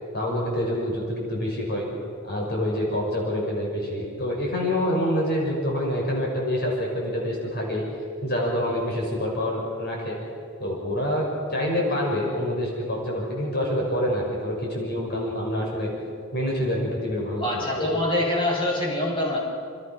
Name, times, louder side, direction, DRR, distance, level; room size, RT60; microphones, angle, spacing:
voice 1, 0.1-1.9 2.2-7.8 8.2-10.2 10.6-15.9 16.3-18.0, left 1 dB, 45° left, -2 dB, 6.1 m, -26 dB
voice 2, 17.4-19.4, left 1 dB, 25° left, -3 dB, 7.9 m, -25 dB
29.5 x 29.0 x 6.2 m, 2.4 s
head